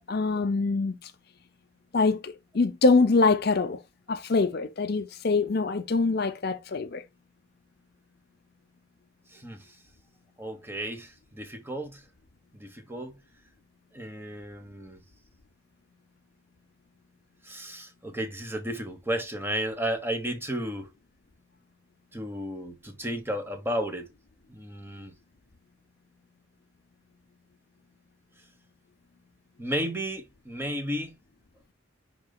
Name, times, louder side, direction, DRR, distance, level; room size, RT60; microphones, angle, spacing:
voice 1, 0.1-1.0 1.9-3.8 4.1-7.0, left 3 dB, 50° left, 0.6 m, -24 dB
voice 2, 9.3-9.8 10.4-12.0 12.5-13.2 13.9-15.0 17.4-20.9 22.1-24.1 24.5-25.1 29.6-31.2, right 1 dB, 10° right, 1.1 m, -33 dB
10.5 x 3.9 x 2.3 m
head